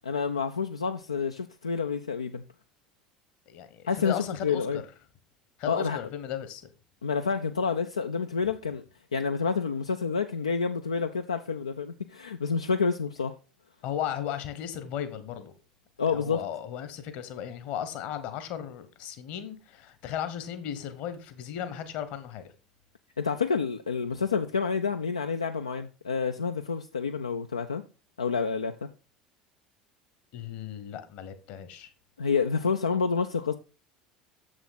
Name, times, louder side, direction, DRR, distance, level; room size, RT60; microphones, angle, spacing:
voice 1, 0.0-2.4 3.9-4.8 5.7-6.0 7.0-8.8 9.1-13.4 16.0-16.4 23.2-27.8 28.2-28.9 32.2-33.5, left 5 dB, 80° left, 0.4 m, -28 dB
voice 2, 3.5-4.8 5.6-6.7 13.8-15.5 16.1-22.5 30.3-31.9, left 9 dB, 50° left, 1.1 m, -36 dB
7.2 x 6.3 x 4.0 m
figure-of-eight pair, 65°, 3 cm